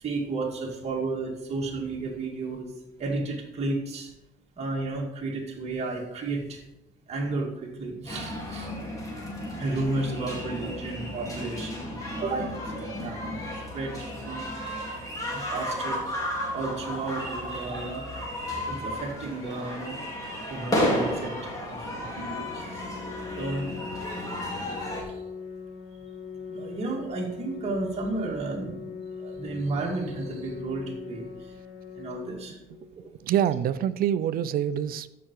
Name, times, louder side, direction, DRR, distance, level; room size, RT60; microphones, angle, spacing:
voice 1, 0.0-2.7 3.0-4.1 4.6-6.6 7.1-8.7 9.6-13.4 13.7-14.5 15.2-16.2 16.5-18.1 18.5-20.0 20.5-22.9 23.4-23.8 24.2-25.2 26.5-28.9 29.2-31.5 31.9-32.6, right 3 dB, 40° right, -2 dB, 2.2 m, -33 dB
sound 1, 8.1-25.0, left 1 dB, 20° left, 3.4 m, -33 dB
Organ, 22.3-33.3, left 5 dB, 80° left, 1.7 m, -41 dB
voice 2, 33.2-35.1, right 10 dB, 60° right, 15 dB, 0.5 m, -25 dB
13.5 x 5.9 x 4.6 m, 0.92 s
cardioid pair, 110°, 17 cm